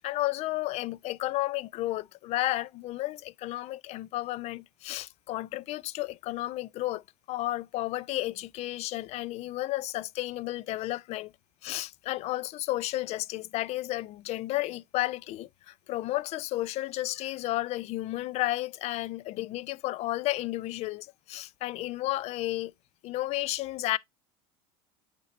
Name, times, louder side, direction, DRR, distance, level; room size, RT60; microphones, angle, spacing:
voice 1, 0.0-11.3 11.6-22.7 23.0-24.0, left 17 dB, 50° left, 0.5 m, -32 dB
8.8 x 2.9 x 4.2 m
supercardioid pair, 115°, 14 cm